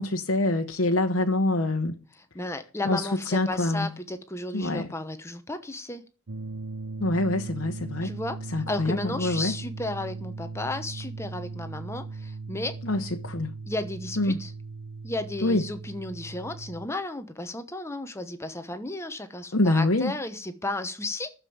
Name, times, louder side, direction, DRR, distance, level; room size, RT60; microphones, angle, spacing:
voice 1, 0.0-2.0 2.8-3.9 4.5-4.9 7.0-8.1 8.5-9.5 12.8-13.5 14.2-14.4 15.4-15.6 19.5-20.1, left 2 dB, 60° left, 1.0 m, -25 dB
voice 2, 2.1-6.0 8.0-12.8 13.7-14.5 15.0-21.3, left 2 dB, 10° left, 0.9 m, -34 dB
sound 1, 6.3-16.9, right 3 dB, 75° right, 0.7 m, -38 dB
12.0 x 7.1 x 8.5 m
head